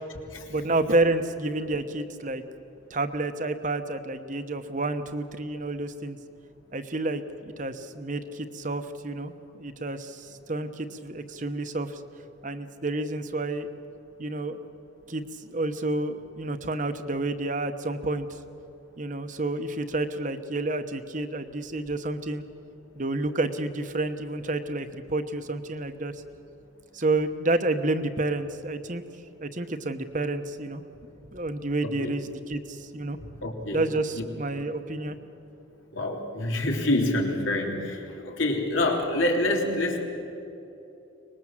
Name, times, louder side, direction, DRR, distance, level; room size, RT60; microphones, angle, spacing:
voice 1, 0.5-2.4 2.9-6.2 6.7-12.0 12.4-13.7 14.2-14.6 15.1-15.2 15.5-18.3 19.0-22.4 23.0-26.1 26.9-29.0 29.4-30.8 31.3-33.2 33.7-35.2, right 2 dB, 40° right, 8 dB, 1.0 m, -29 dB
voice 2, 31.8-32.2 33.4-33.8 34.2-34.3 35.9-40.1, left 1 dB, 85° left, 1 dB, 3.2 m, -27 dB
24.0 x 20.5 x 7.4 m, 2.9 s
head